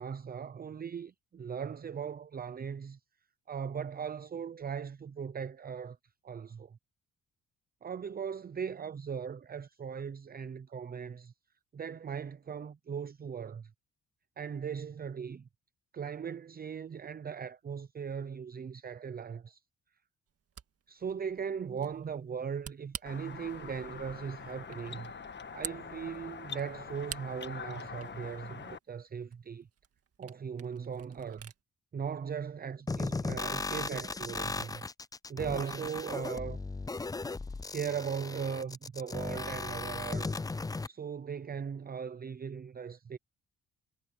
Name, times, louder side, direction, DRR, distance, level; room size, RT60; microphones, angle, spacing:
voice 1, 0.0-3.0 3.5-6.0 6.2-6.8 7.8-11.3 11.7-13.7 14.4-15.5 15.9-19.6 20.9-25.1 25.5-29.7 30.2-31.5 31.9-34.8 35.3-36.6 37.7-40.3 40.9-43.2, right 7 dB, 30° right, 0.7 m, -39 dB
Camera, 20.3-31.6, right 8 dB, 50° right, 1.9 m, -50 dB
sound 1, 23.1-28.8, left 6 dB, 35° left, 1.5 m, -44 dB
sound 2, 32.9-40.9, left 3 dB, 10° left, 0.5 m, -37 dB
cardioid pair, 90°, 30 cm